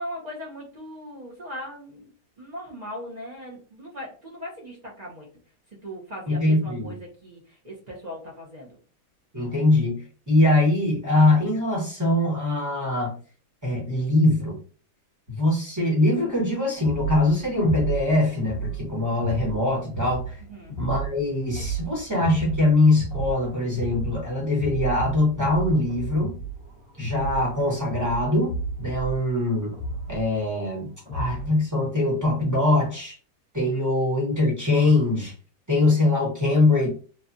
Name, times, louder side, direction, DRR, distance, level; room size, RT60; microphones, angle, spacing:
voice 1, 0.0-2.1 2.4-5.3 5.8-8.8 20.5-20.8, equal, 40° right, -3 dB, 0.6 m, -38 dB
voice 2, 6.3-6.9 9.3-10.0 10.3-13.1 13.6-14.6 15.3-20.4 20.8-26.4 27.0-28.5 28.8-29.7 30.1-33.2 33.5-35.3 35.7-36.9, left 2 dB, 15° right, -4 dB, 1.0 m, -22 dB
sound 1, 16.8-31.6, right 4 dB, 35° left, 1.1 m, -33 dB
3.1 x 2.3 x 2.6 m, 0.38 s
omnidirectional pair, 1.8 m